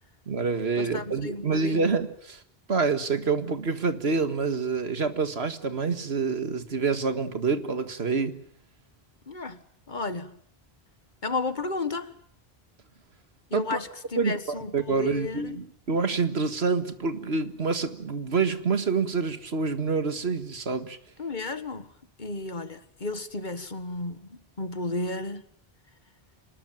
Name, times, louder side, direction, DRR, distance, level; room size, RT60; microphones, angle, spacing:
voice 1, 0.3-2.4 2.7-8.4 13.5-13.8 14.2-14.4 14.7-21.0, right 4 dB, 90° right, 2.0 m, -27 dB
voice 2, 0.8-1.9 9.3-9.6 9.9-10.4 11.2-12.1 13.5-15.6 21.2-21.9 22.2-25.4, left 3 dB, 50° left, 1.7 m, -33 dB
26.5 x 20.0 x 9.2 m
omnidirectional pair, 1.0 m